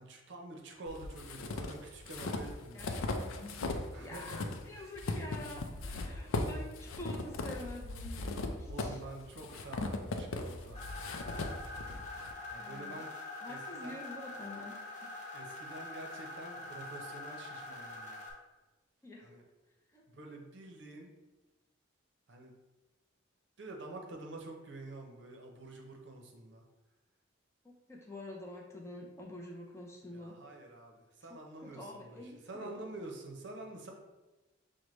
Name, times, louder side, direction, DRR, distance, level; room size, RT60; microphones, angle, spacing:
voice 1, 0.0-2.9 3.9-4.8 8.6-10.8 12.5-13.1 13.5-14.0 15.3-18.2 19.2-19.4 20.1-21.1 22.3-22.5 23.6-26.6 30.1-33.9, right 2 dB, 60° right, 2 dB, 0.6 m, -48 dB
sound 1, 0.9-3.9 4.1-12.3, left 2 dB, 85° left, 0.4 m, -38 dB
voice 2, 2.7-3.5 4.0-9.0 12.6-13.0 13.4-15.1 19.0-19.3 19.9-20.1 27.6-30.4 31.6-32.8, left 1 dB, 15° left, -2 dB, 0.5 m, -47 dB
sound 2, 10.7-18.3, left 2 dB, 35° left, 0.8 m, -45 dB
6.2 x 2.1 x 3.1 m, 1.1 s
head